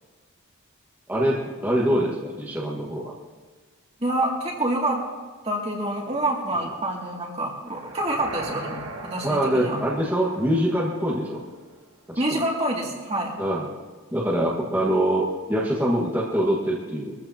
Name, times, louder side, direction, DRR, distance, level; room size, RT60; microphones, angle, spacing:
voice 1, 1.1-3.1 6.6-6.7 9.2-11.4 12.1-12.4 13.4-13.7 14.1-17.1, right 1 dB, 10° right, -6 dB, 1.6 m, -24 dB
voice 2, 4.0-5.0 5.4-9.8 12.2-13.3, right 1 dB, 30° right, -1 dB, 2.4 m, -27 dB
sound 1, 7.7-11.8, right 2 dB, 60° right, 1.7 m, -39 dB
22.5 x 14.5 x 2.9 m, 1.4 s
head